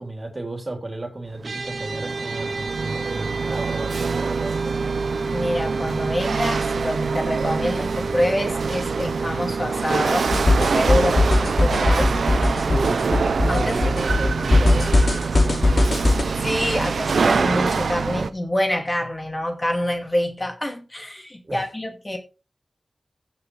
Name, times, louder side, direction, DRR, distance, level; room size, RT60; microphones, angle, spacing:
voice 1, 0.0-4.9 12.0-13.0 13.4-16.0 21.4-21.7, right 2 dB, 45° right, 3.4 m, -33 dB
sound 1, 1.4-12.9, right 3 dB, 70° right, 1.7 m, -32 dB
Chatter / Hiss / Rattle, 1.4-18.3, right 5 dB, 90° right, 0.5 m, -25 dB
voice 2, 5.3-12.1 13.5-13.9 16.4-22.2, left 1 dB, 25° left, 2.2 m, -26 dB
sound 2, 10.3-16.2, left 2 dB, 65° left, 2.8 m, -19 dB
15.0 x 7.2 x 3.2 m
cardioid pair, 45°, 0 cm